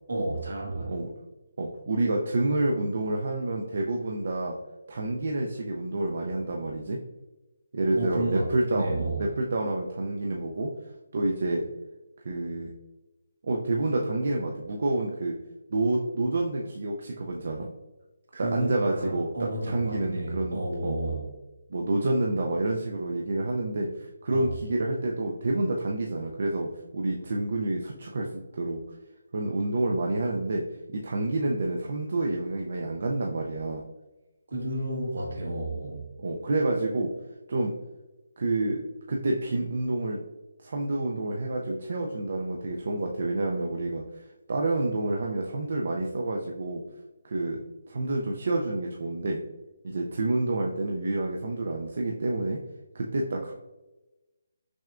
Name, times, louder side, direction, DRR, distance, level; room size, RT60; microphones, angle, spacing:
voice 1, 0.1-0.9 7.9-9.4 18.3-21.3 24.3-24.5 34.5-36.1, right 1 dB, 80° right, -1 dB, 1.4 m, -31 dB
voice 2, 1.6-4.6 4.9-7.0 7.7-8.9 9.2-10.7 11.1-11.6 12.2-12.7 13.4-15.4 15.7-17.7 18.4-19.3 19.7-21.0 21.7-26.7 26.9-28.8 29.3-30.6 30.9-33.8 36.2-37.1 37.5-37.7 38.4-38.8 39.1-40.2 40.6-46.8 47.2-47.6 47.9-49.4 49.8-52.6 52.9-53.5, right 2 dB, 55° right, 0 dB, 0.4 m, -28 dB
6.0 x 2.2 x 2.4 m, 1.1 s
hypercardioid pair, 170°, 0 cm